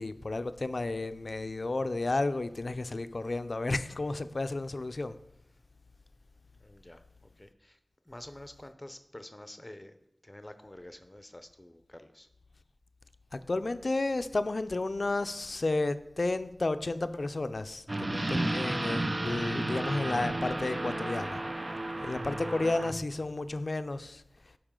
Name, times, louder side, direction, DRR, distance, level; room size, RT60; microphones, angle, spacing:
voice 1, 0.0-5.2 13.3-21.4 22.0-24.2, left 2 dB, 65° left, 0.4 m, -32 dB
voice 2, 6.6-7.0 7.4-7.5 8.1-9.9 10.3-11.3 11.6-12.3, left 1 dB, 25° left, 0.6 m, -48 dB
sound 1, 17.9-22.9, right 1 dB, 40° right, 0.5 m, -33 dB
12.0 x 4.8 x 3.7 m
wide cardioid pair, 45°, 0 cm